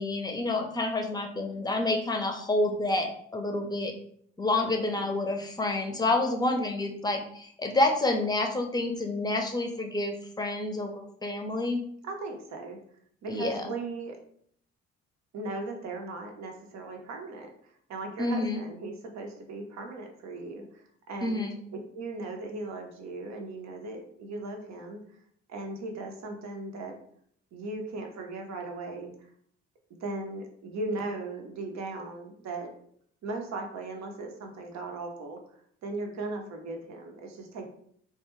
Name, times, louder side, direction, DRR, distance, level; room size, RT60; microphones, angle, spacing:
voice 1, 0.0-3.9 4.4-11.8 13.3-13.7 18.2-18.6 21.2-21.5, left 2 dB, 15° left, 3 dB, 0.6 m, -28 dB
voice 2, 4.6-5.2 12.0-12.8 13.2-14.2 15.3-21.5 21.9-25.0 25.5-27.0 27.5-29.3 30.0-32.7 33.2-37.7, right 2 dB, 65° right, 3 dB, 0.7 m, -38 dB
2.2 x 2.2 x 3.0 m, 0.64 s
supercardioid pair, 55°, 30 cm